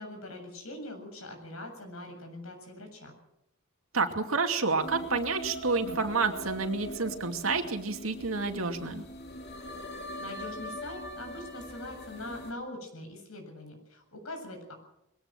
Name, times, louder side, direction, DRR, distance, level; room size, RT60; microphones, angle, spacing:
voice 1, 0.0-3.2 10.2-14.7, left 1 dB, 85° left, 4 dB, 7.5 m, -42 dB
voice 2, 3.9-9.0, right 4 dB, 75° right, 5 dB, 2.4 m, -29 dB
sound 1, 4.8-12.5, equal, 50° left, 3.0 m, -41 dB
22.0 x 17.5 x 7.7 m, 0.83 s
head